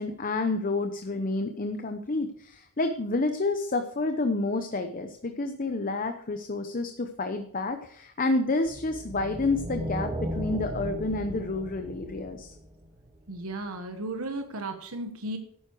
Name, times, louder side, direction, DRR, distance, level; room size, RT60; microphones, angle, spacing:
voice 1, 0.0-12.5, left 2 dB, 40° left, 7 dB, 0.8 m, -29 dB
sound 1, 8.6-13.1, equal, 20° right, 1.3 m, -36 dB
voice 2, 13.3-15.4, right 2 dB, 70° right, 6 dB, 1.2 m, -35 dB
12.0 x 9.4 x 4.6 m, 0.63 s
head